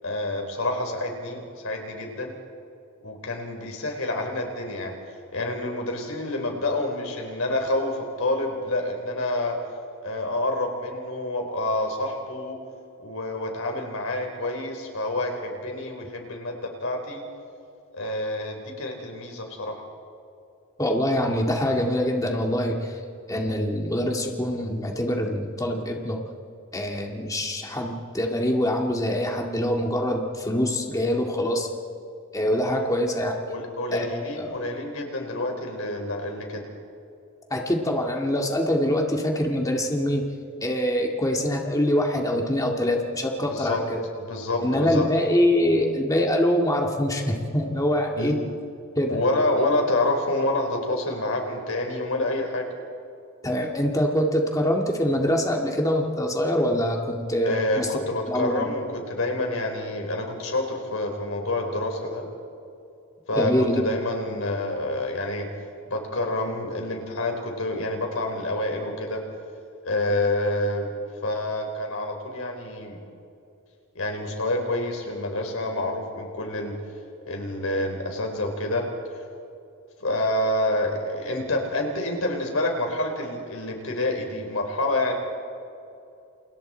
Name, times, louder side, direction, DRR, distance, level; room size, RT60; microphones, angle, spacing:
voice 1, 0.0-2.4 3.0-4.9 5.3-9.6 10.0-12.6 13.0-17.2 17.9-19.8 33.5-36.6 43.4-43.8 44.2-45.1 48.1-48.4 49.1-52.7 57.4-62.2 63.3-65.5 65.9-69.2 69.8-70.9 71.2-73.0 73.9-76.7 77.3-78.9 80.0-85.1, left 1 dB, 75° left, 3 dB, 4.4 m, -28 dB
voice 2, 20.8-23.0 23.3-26.2 26.7-31.7 32.3-33.4 33.9-34.6 37.5-40.2 40.6-44.0 44.6-48.4 49.0-49.2 53.4-58.7 63.4-63.9, left 1 dB, 15° left, 0 dB, 2.0 m, -24 dB
30.0 x 28.5 x 4.5 m, 2.6 s
head